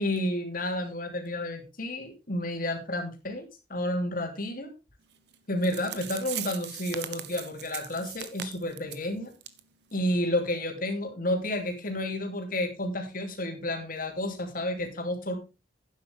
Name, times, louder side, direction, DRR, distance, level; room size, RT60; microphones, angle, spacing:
voice 1, 0.0-4.7 5.5-9.3 9.9-15.3, left 1 dB, 50° left, 4 dB, 3.0 m, -31 dB
sound 1, 5.3-5.4 5.6-9.1 9.4-9.6 9.9-10.0 10.5-10.6, right 10 dB, 65° right, 1.2 m, -39 dB
11.5 x 9.7 x 3.5 m, 0.29 s
head